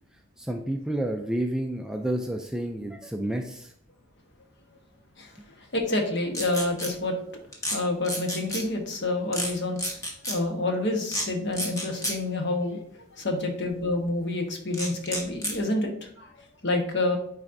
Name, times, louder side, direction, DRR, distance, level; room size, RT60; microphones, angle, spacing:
voice 1, 0.4-3.7, right 1 dB, 5° right, 3 dB, 0.3 m, -30 dB
voice 2, 5.7-7.1 7.7-9.8 10.3-12.8 13.2-15.9 16.2-16.3 16.6-17.2, left 2 dB, 55° left, 3 dB, 1.1 m, -28 dB
sound 1, 6.3-6.9 7.5-7.8 8.0-8.6 9.3-9.5 9.8-10.4 11.1-11.3 11.5-12.2 14.7-15.6, equal, 15° left, 1.0 m, -30 dB
9.1 x 4.1 x 2.6 m, 0.68 s
head